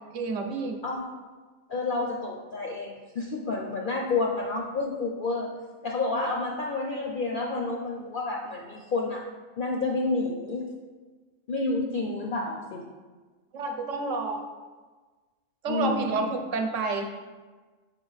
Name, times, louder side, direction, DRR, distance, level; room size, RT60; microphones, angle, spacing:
voice 1, 0.1-0.8 13.5-14.5 15.6-17.1, right 3 dB, 70° right, 4 dB, 1.0 m, -29 dB
voice 2, 1.7-5.5 5.8-9.2 9.6-10.7 11.5-12.9 15.7-16.3, left 3 dB, 60° left, 0 dB, 0.5 m, -29 dB
5.6 x 4.3 x 4.0 m, 1.3 s
omnidirectional pair, 1.4 m